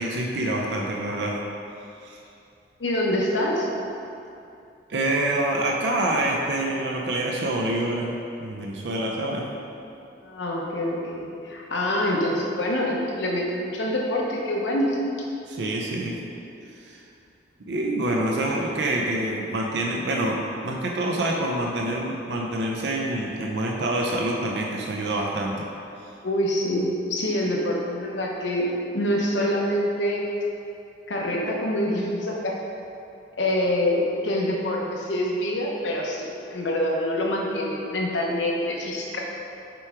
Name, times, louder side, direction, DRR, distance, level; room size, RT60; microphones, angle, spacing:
voice 1, 0.0-1.4 2.0-2.2 4.9-8.1 8.4-9.6 15.5-16.2 16.8-17.0 17.7-25.7, right 1 dB, 65° right, -1 dB, 0.5 m, -26 dB
voice 2, 2.8-3.7 10.2-15.3 18.3-18.4 26.2-30.2 31.1-32.6 33.3-39.2, left 1 dB, 75° left, -2 dB, 0.9 m, -26 dB
6.0 x 4.8 x 3.5 m, 2.7 s
head